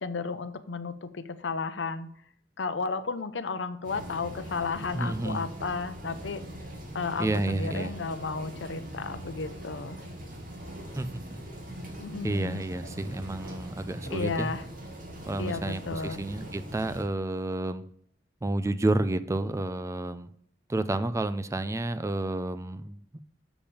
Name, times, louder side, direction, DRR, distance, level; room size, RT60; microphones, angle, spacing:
voice 1, 0.0-2.1 2.6-6.4 6.9-10.1 12.0-12.6 14.1-14.6 15.4-16.2, left 4 dB, 70° left, 12 dB, 0.7 m, -33 dB
sound 1, 3.8-17.0, equal, 50° right, 2.1 m, -42 dB
voice 2, 4.9-5.4 7.2-8.0 10.9-11.1 12.2-14.5 15.3-17.8 18.4-20.3 20.7-23.2, right 2 dB, 15° right, 13 dB, 0.4 m, -30 dB
7.2 x 5.1 x 7.0 m, 0.66 s
head